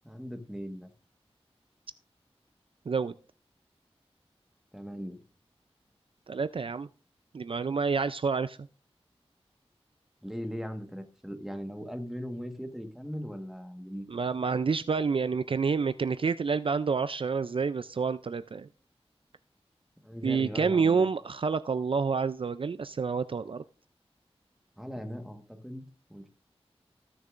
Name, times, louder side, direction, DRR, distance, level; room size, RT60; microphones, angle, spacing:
voice 1, 0.0-0.9 4.7-5.2 10.2-14.1 20.0-21.1 24.8-25.8 26.1-26.3, equal, 5° right, 6 dB, 1.4 m, -39 dB
voice 2, 6.3-6.9 7.3-8.6 14.1-18.7 20.2-23.6, right 5 dB, 55° right, 13 dB, 0.4 m, -28 dB
18.5 x 6.6 x 2.5 m, 0.39 s
wide cardioid pair, 55°, 11 cm